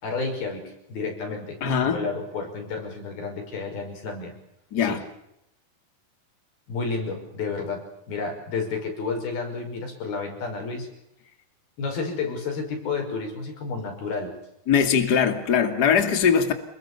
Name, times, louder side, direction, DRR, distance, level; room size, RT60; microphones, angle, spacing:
voice 1, 0.0-4.3 4.8-5.0 6.7-10.9 11.8-14.4, left 4 dB, 80° left, 4 dB, 7.6 m, -31 dB
voice 2, 1.6-2.0 4.7-5.0 14.7-16.5, left 7 dB, 30° left, 7 dB, 2.6 m, -21 dB
29.5 x 21.5 x 7.0 m, 0.80 s
omnidirectional pair, 4.3 m